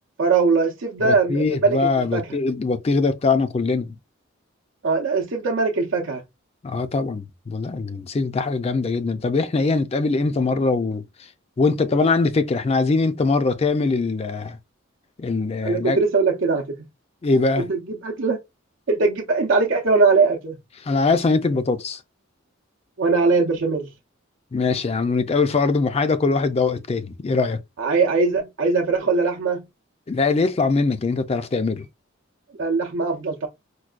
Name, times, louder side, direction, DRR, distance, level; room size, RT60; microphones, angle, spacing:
voice 1, 0.2-1.8 2.1-2.4 4.8-6.2 15.6-16.8 17.6-18.4 18.9-20.6 23.0-23.9 27.8-29.6 32.6-33.5, right 4 dB, 70° right, 0.6 m, -21 dB
voice 2, 1.0-4.0 6.6-11.0 11.6-14.6 15.2-16.0 17.2-17.7 20.8-22.0 24.5-27.6 30.1-31.9, left 3 dB, 30° left, 0.4 m, -22 dB
4.5 x 2.2 x 2.4 m
head